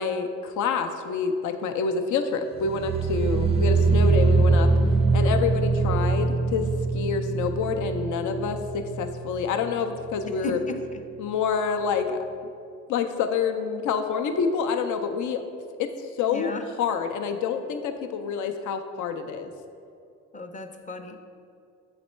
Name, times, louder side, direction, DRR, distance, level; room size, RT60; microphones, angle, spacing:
voice 1, 0.0-4.7 5.1-6.7 6.9-10.6 11.2-12.2 12.9-15.4 15.8-16.5 16.8-19.5, left 5 dB, 75° left, 7 dB, 0.6 m, -27 dB
sound 1, 2.6-9.7 10.0-10.4 10.8-10.9, right 4 dB, 20° right, 0.4 m, -23 dB
voice 2, 10.2-11.0 16.3-16.6 20.3-21.2, left 3 dB, 25° left, 6 dB, 0.6 m, -35 dB
7.0 x 4.1 x 4.3 m, 2.5 s
cardioid pair, 90°, 30 cm